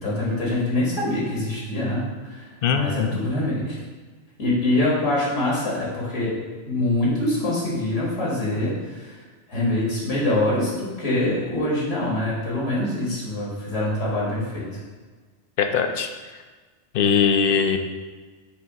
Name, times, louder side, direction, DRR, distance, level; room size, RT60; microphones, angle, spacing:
voice 1, 0.0-3.8 4.4-6.4 6.6-9.2 9.5-14.8, left 1 dB, 90° left, -5 dB, 2.1 m, -24 dB
voice 2, 2.6-3.2 15.6-16.1 16.9-17.8, left 6 dB, 60° left, 6 dB, 0.7 m, -21 dB
7.0 x 2.7 x 5.1 m, 1.4 s
omnidirectional pair, 1.2 m